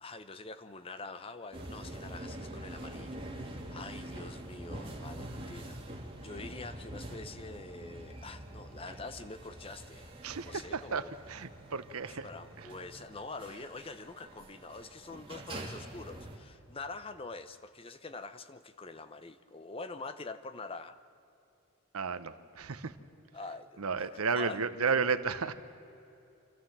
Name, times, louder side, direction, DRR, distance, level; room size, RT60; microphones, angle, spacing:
voice 1, 0.0-10.1 10.4-11.1 12.1-21.0 23.3-24.6, left 3 dB, 25° left, 11 dB, 0.7 m, -45 dB
sound 1, 1.5-16.4, right 1 dB, 25° right, 2.4 m, -45 dB
voice 2, 10.2-12.3 12.6-12.7 21.9-22.9 23.8-25.5, right 5 dB, 80° right, 11 dB, 0.9 m, -33 dB
28.0 x 13.5 x 7.4 m, 2.9 s
head